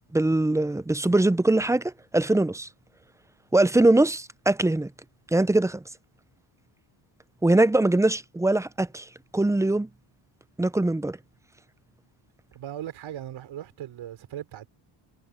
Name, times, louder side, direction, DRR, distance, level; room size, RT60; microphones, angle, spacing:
voice 1, 0.1-2.7 3.5-4.9 5.3-5.8 7.4-9.0 9.3-9.9 10.6-11.2, right 2 dB, 5° right, 0.5 m, -22 dB
voice 2, 12.5-14.7, right 11 dB, 75° right, 4.1 m, -38 dB
cardioid pair, 90°, 47 cm